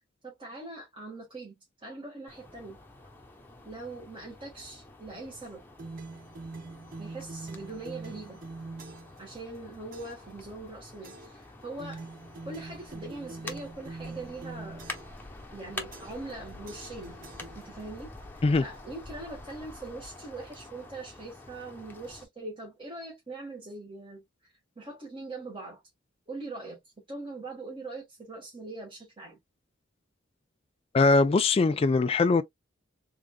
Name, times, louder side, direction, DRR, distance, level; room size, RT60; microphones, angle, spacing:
voice 1, 0.2-1.5 1.8-2.8 3.6-5.6 7.0-8.4 9.2-12.1 12.4-14.9 15.5-17.2 17.5-24.2 24.8-25.8 26.3-26.8 27.1-29.4, right 2 dB, 25° right, 1.4 m, -42 dB
sound 1, 2.3-22.2, left 2 dB, 10° left, 0.9 m, -47 dB
sound 2, 5.8-9.2 9.9-10.3 11.0-11.4 11.8-15.2 15.9-16.4 16.7-18.0, right 3 dB, 45° right, 0.7 m, -44 dB
voice 2, 30.9-32.4, left 3 dB, 30° left, 0.3 m, -21 dB
3.7 x 3.6 x 2.3 m
head